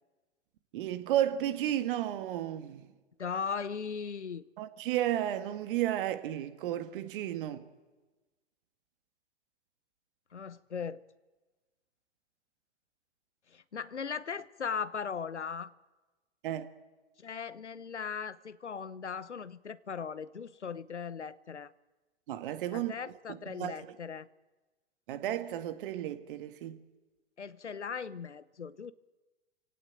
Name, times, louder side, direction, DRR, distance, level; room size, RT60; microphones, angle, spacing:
voice 1, 0.7-2.9 4.6-7.6 16.4-16.7 22.3-22.9 23.5-23.7 25.1-26.8, right 12 dB, 50° right, 1.8 m, -33 dB
voice 2, 3.2-4.4 10.3-11.0 13.5-15.7 17.2-21.7 22.7-24.3 27.4-28.9, left 6 dB, 90° left, 1.0 m, -38 dB
26.0 x 17.0 x 9.2 m
figure-of-eight pair, 115°, 34 cm